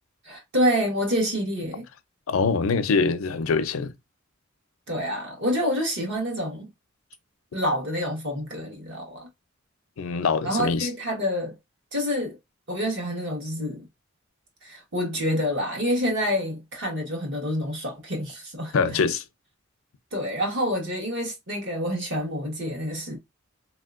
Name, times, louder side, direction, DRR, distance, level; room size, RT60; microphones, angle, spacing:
voice 1, 0.2-1.8 4.9-6.7 7.5-9.3 10.4-11.5 11.9-12.4 12.7-13.9 14.6-19.0 20.1-23.2, equal, 60° right, 1.3 m, -27 dB
voice 2, 2.3-3.9 10.0-10.9 18.7-19.2, left 4 dB, 80° left, 0.5 m, -24 dB
3.2 x 2.8 x 2.4 m
head